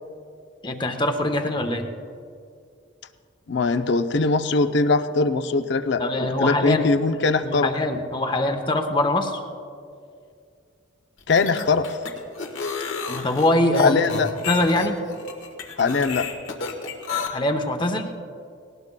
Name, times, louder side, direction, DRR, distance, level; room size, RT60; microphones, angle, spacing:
voice 1, 0.6-1.9 6.0-6.9 7.4-9.4 13.1-14.0 14.5-15.0 17.3-18.1, left 1 dB, 25° left, 7 dB, 0.8 m, -23 dB
voice 2, 3.5-7.7 11.3-12.0 13.8-14.3 15.8-16.3, left 3 dB, 60° left, 10 dB, 0.5 m, -21 dB
sound 1, 11.2-17.3, left 4 dB, 85° left, 1.4 m, -31 dB
19.0 x 18.5 x 2.2 m, 2.4 s
head